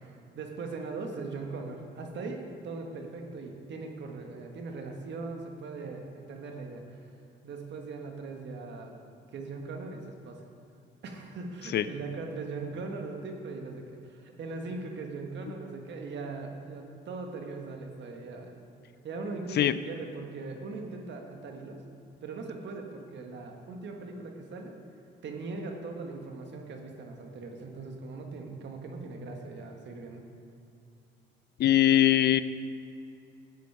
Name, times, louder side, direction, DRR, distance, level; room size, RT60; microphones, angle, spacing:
voice 1, 0.0-7.1 7.4-8.9 9.3-10.4 11.0-18.6 19.0-21.8 22.2-24.7 25.2-30.2, right 3 dB, 65° right, 3 dB, 1.5 m, -40 dB
voice 2, 31.6-32.4, left 12 dB, 55° left, 14 dB, 0.5 m, -21 dB
12.0 x 8.4 x 4.7 m, 2.6 s
cardioid pair, 90°, 20 cm